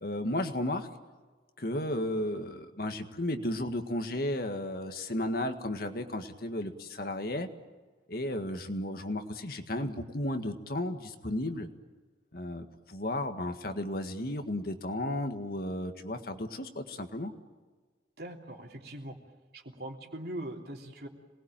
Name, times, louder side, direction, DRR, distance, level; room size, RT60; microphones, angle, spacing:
voice 1, 0.0-0.9 1.6-7.5 8.1-11.7 12.3-17.3, left 1 dB, 55° left, 6 dB, 1.8 m, -34 dB
voice 2, 18.2-19.1 19.5-21.1, right 1 dB, 60° right, 1 dB, 3.2 m, -41 dB
27.5 x 20.5 x 9.0 m, 1.4 s
head